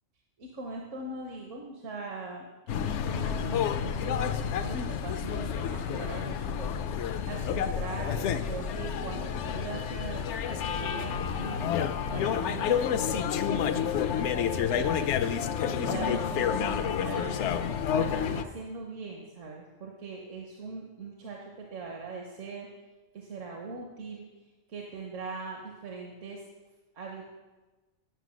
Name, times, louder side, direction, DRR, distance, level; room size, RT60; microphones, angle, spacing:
voice 1, 0.4-11.8 12.1-15.0 15.6-17.5 17.9-22.7 23.1-24.3 24.7-26.4 26.9-27.2, right 4 dB, 80° right, 0 dB, 1.4 m, -41 dB
sound 1, 2.7-18.4, left 8 dB, 70° left, 0.8 m, -29 dB
10.0 x 5.9 x 6.2 m, 1.2 s
omnidirectional pair, 1.3 m